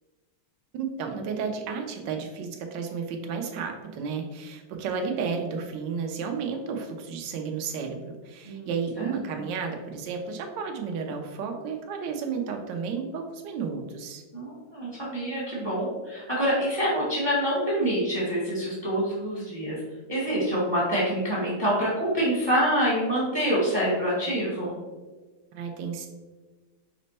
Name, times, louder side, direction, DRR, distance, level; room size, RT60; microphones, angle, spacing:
voice 1, 0.7-14.2 25.5-26.1, right 5 dB, 70° right, 4 dB, 1.2 m, -32 dB
voice 2, 14.3-19.8 20.1-24.8, equal, 20° right, -6 dB, 0.8 m, -26 dB
5.1 x 2.1 x 4.1 m, 1.3 s
omnidirectional pair, 2.3 m